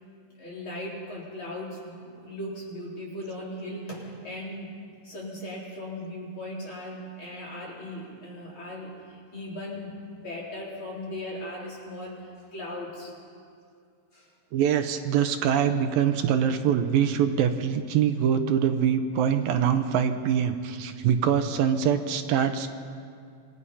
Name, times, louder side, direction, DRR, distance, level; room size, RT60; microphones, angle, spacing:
voice 1, 0.3-4.7 5.0-13.1 14.1-14.3, left 1 dB, 35° left, -4 dB, 4.8 m, -38 dB
voice 2, 14.5-22.7, right 8 dB, 80° right, 7 dB, 2.6 m, -24 dB
27.0 x 20.0 x 5.7 m, 2.3 s
omnidirectional pair, 4.2 m